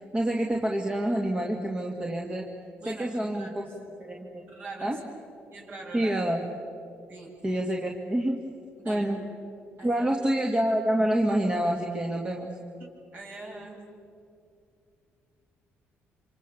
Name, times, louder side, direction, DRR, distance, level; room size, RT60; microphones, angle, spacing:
voice 1, 0.1-2.5 2.9-3.6 4.0-4.5 4.8-5.0 5.9-6.4 7.4-8.4 8.8-9.2 9.8-12.5, right 1 dB, 20° right, 0 dB, 2.3 m, -27 dB
voice 2, 2.8-3.7 4.5-5.0 5.5-6.1 7.1-7.4 8.8-9.0 9.8-10.1 12.8-13.8, right 2 dB, 45° right, -1 dB, 7.3 m, -43 dB
26.5 x 26.5 x 7.2 m, 2.4 s
cardioid pair, 100°, 5 cm